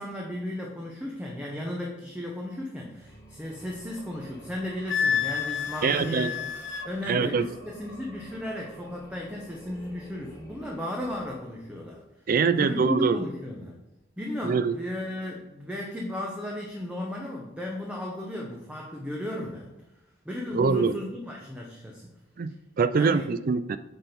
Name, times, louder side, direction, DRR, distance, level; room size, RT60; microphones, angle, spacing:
voice 1, 0.0-6.5 6.8-12.0 12.5-13.8 14.2-19.7 20.2-22.1 22.9-23.3, left 1 dB, 5° right, -1 dB, 0.9 m, -35 dB
sound 1, 2.9-11.9, equal, 15° left, 1.1 m, -50 dB
Wind instrument woodwind instrument, 4.9-6.9, left 7 dB, 65° left, 0.6 m, -29 dB
voice 2, 5.8-6.3 7.1-7.5 12.3-13.2 14.4-14.7 20.5-21.0 22.4-23.8, right 5 dB, 45° right, 13 dB, 0.4 m, -24 dB
8.6 x 4.1 x 5.2 m, 0.97 s
head